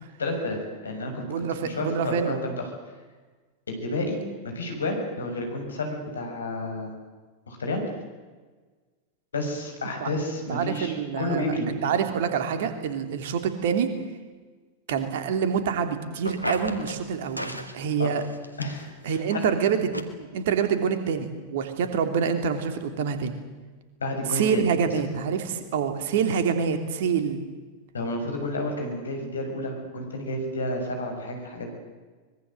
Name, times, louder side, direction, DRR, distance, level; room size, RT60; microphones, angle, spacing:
voice 1, 0.2-0.6 0.8-2.5 3.7-4.2 4.4-6.9 7.5-7.8 9.3-11.7 18.0-18.1 18.6-19.4 24.0-24.7 27.9-31.7, left 1 dB, 70° left, 3 dB, 6.5 m, -30 dB
voice 2, 1.3-2.4 10.0-10.1 10.5-13.9 14.9-18.2 19.0-23.4 24.3-27.4, right 6 dB, 55° right, 8 dB, 3.0 m, -26 dB
sound 1, 16.2-17.0 17.4-17.8 18.1-19.0 19.4-19.5 19.9-20.0, equal, 90° right, 2.0 m, -34 dB
24.0 x 22.0 x 7.9 m, 1.4 s
figure-of-eight pair, 90°, 0 cm